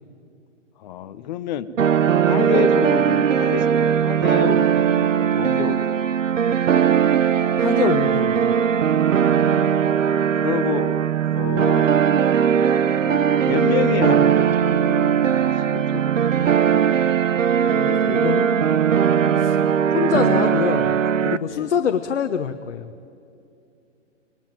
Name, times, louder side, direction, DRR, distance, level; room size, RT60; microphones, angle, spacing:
voice 1, 0.8-1.7 2.3-6.0 6.5-6.6 9.2-9.7 10.4-11.1 11.3-12.0 12.9-16.8 17.6-18.3 21.5-21.7, left 10 dB, 35° left, 12 dB, 1.1 m, -29 dB
sound 1, 1.8-21.4, right 8 dB, 85° right, 1.0 m, -19 dB
voice 2, 7.6-8.5 18.0-18.8 19.3-19.6 19.9-20.9 21.2-22.9, left 8 dB, 65° left, 7 dB, 1.2 m, -25 dB
26.0 x 20.0 x 9.1 m, 2.6 s
hypercardioid pair, 145°, 38 cm